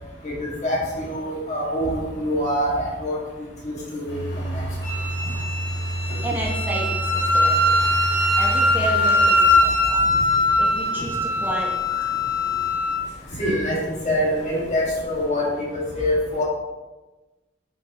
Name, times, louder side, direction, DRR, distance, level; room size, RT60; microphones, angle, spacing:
voice 1, 0.2-3.2 3.6-4.2 4.5-4.6 11.9-12.0 13.4-15.5 15.9-16.4, equal, 40° left, -4 dB, 2.0 m, -25 dB
sound 1, 4.1-15.3, right 1 dB, 75° left, 1.7 m, -32 dB
Wind instrument woodwind instrument, 4.8-13.0, left 1 dB, 60° right, 2.2 m, -21 dB
voice 2, 6.2-7.8 8.4-10.0 10.6-11.8, right 1 dB, 10° right, -2 dB, 1.0 m, -31 dB
7.0 x 5.7 x 3.0 m, 1.1 s
head